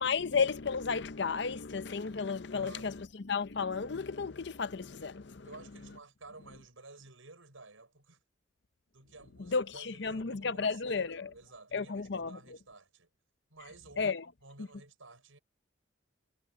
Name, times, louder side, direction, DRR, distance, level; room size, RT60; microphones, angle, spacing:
voice 1, 0.0-5.5 9.4-11.3 11.7-12.6 14.0-14.3 14.6-14.7, left 5 dB, 60° left, 0.6 m, -33 dB
voice 2, 2.5-2.9 5.4-8.2 8.9-13.1 13.5-14.1 14.4-15.4, right 3 dB, 85° right, 6.1 m, -53 dB
head